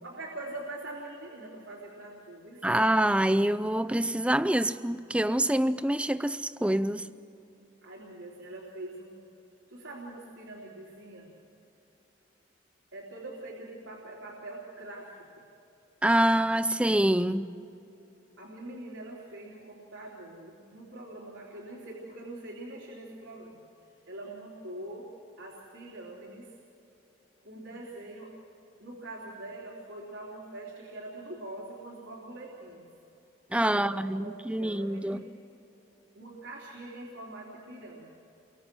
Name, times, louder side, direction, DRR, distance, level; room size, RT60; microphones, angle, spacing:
voice 1, 0.0-2.8 7.8-9.3 9.7-11.3 12.9-15.4 18.4-23.6 24.1-25.1 25.4-26.5 27.4-28.4 28.8-32.9 33.7-35.2 36.1-38.1, right 2 dB, 85° right, 3.5 m, -43 dB
voice 2, 2.6-7.1 16.0-17.5 33.5-35.2, right 1 dB, 5° right, 0.5 m, -26 dB
29.0 x 23.5 x 6.2 m
head